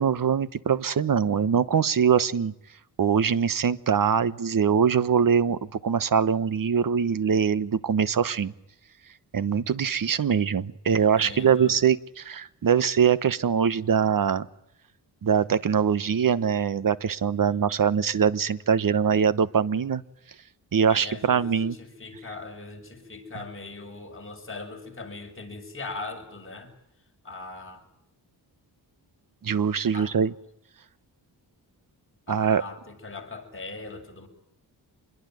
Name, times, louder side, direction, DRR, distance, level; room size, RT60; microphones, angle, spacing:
voice 1, 0.0-2.5 3.0-8.5 9.3-14.5 15.2-20.0 20.7-21.7 29.4-30.3 32.3-32.6, right 7 dB, 50° right, 16 dB, 1.3 m, -23 dB
voice 2, 10.9-11.8 20.9-26.7 27.2-27.8 29.9-30.1 32.3-34.3, left 3 dB, 30° left, 2 dB, 7.2 m, -40 dB
26.5 x 22.0 x 9.4 m, 0.77 s
wide cardioid pair, 120°, 42 cm